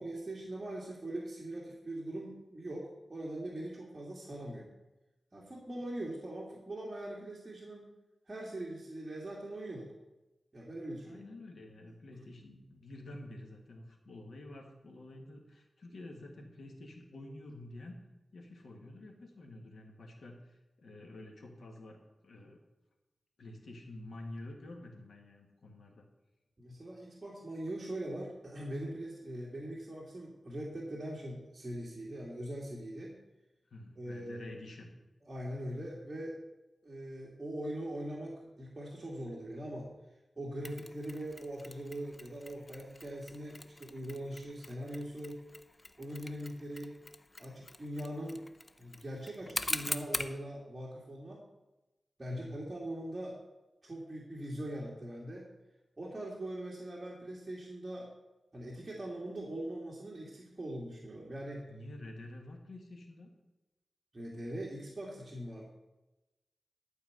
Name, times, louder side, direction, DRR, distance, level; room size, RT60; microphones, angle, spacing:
voice 1, 0.0-4.7 5.3-7.9 8.3-9.9 10.5-11.2 12.1-12.2 26.6-33.2 34.0-34.6 35.3-36.4 36.8-39.9 40.4-45.4 46.0-47.0 47.4-48.4 48.8-51.4 52.2-53.4 53.8-55.5 56.0-58.1 58.5-61.7 64.1-65.6, right 1 dB, 30° right, -5 dB, 2.0 m, -41 dB
voice 2, 11.0-18.0 18.3-22.6 23.4-26.1 33.7-34.9 52.2-52.7 61.7-63.3, left 1 dB, 85° left, 2 dB, 1.8 m, -49 dB
Mechanisms, 40.6-50.4, left 2 dB, 30° left, 0.6 m, -43 dB
12.0 x 4.7 x 7.8 m, 1.0 s
wide cardioid pair, 100°, 0 cm